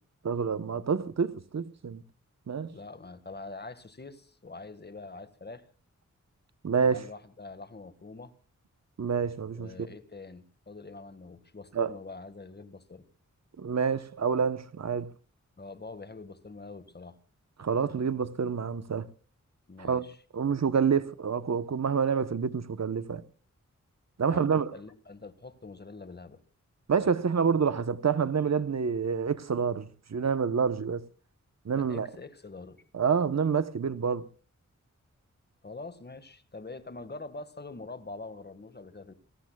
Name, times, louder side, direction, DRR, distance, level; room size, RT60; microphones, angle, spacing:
voice 1, 0.2-2.0 2.5-2.7 6.6-7.0 9.0-9.9 11.7-11.9 13.6-15.1 17.6-19.1 19.8-20.0 20.3-23.2 24.2-24.7 26.9-31.0 31.6-32.1 32.9-34.3, right 6 dB, 60° right, 1.1 m, -28 dB
voice 2, 2.7-5.7 6.8-8.3 9.5-13.0 15.6-17.2 19.7-20.2 24.3-26.4 31.7-32.8 35.6-39.1, left 3 dB, 35° left, 1.8 m, -44 dB
29.0 x 18.5 x 2.4 m
wide cardioid pair, 105°, 30 cm